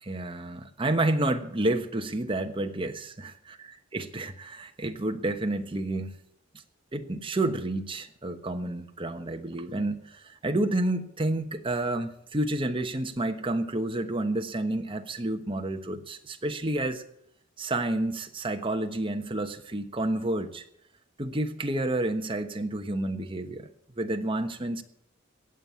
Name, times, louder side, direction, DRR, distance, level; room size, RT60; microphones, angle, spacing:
voice 1, 0.0-3.4 3.9-6.2 6.9-17.0 17.6-20.6 21.2-23.7 24.0-24.8, right 2 dB, 25° right, 6 dB, 1.2 m, -30 dB
17.5 x 7.4 x 8.6 m, 0.75 s
head